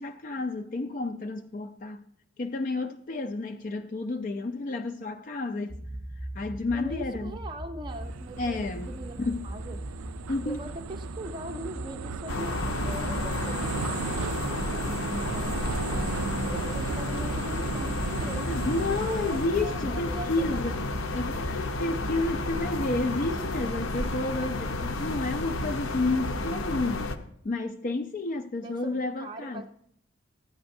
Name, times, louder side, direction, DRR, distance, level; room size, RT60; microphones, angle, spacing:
voice 1, 0.0-2.1 2.4-5.9 6.3-7.4 8.4-8.9 9.2-9.5 10.3-10.6 18.5-20.8 21.1-27.0 27.4-29.6, left 2 dB, 40° left, 0.4 m, -31 dB
sound 1, 5.7-23.7, right 1 dB, ahead, 0.8 m, -40 dB
voice 2, 6.7-9.8 10.4-15.6 16.3-20.8 28.6-29.7, right 1 dB, 20° right, 0.5 m, -41 dB
sound 2, 7.9-19.5, right 6 dB, 85° right, 0.4 m, -36 dB
sound 3, 12.3-27.2, left 2 dB, 75° left, 0.7 m, -32 dB
14.0 x 9.4 x 2.6 m
head